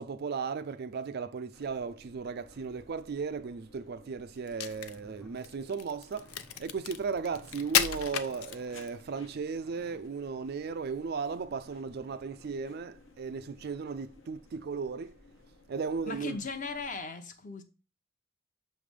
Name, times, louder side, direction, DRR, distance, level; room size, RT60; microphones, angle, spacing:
voice 1, 0.0-15.2 15.7-16.4, right 5 dB, 45° right, 0.4 m, -36 dB
sound 1, 1.5-17.0, left 2 dB, 60° left, 1.0 m, -58 dB
sound 2, 4.1-4.2 4.9-5.5 6.2-6.6 7.3-8.8 9.6-10.0, right 1 dB, 5° left, 0.8 m, -57 dB
Crack, 4.4-9.0, left 9 dB, 85° left, 0.5 m, -33 dB
voice 2, 16.1-17.6, left 4 dB, 35° left, 0.8 m, -37 dB
6.3 x 3.3 x 5.1 m
head